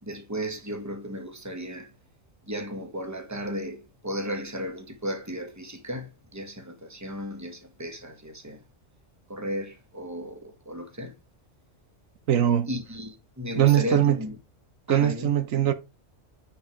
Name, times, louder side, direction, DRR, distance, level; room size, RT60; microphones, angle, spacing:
voice 1, 0.0-1.9 2.5-8.6 9.3-11.1 12.7-14.3 14.9-15.3, equal, 15° right, 1.6 m, -35 dB
voice 2, 12.3-12.7 13.6-14.2 14.9-15.7, right 11 dB, 85° right, 1.3 m, -21 dB
9.2 x 4.8 x 4.7 m
omnidirectional pair, 1.3 m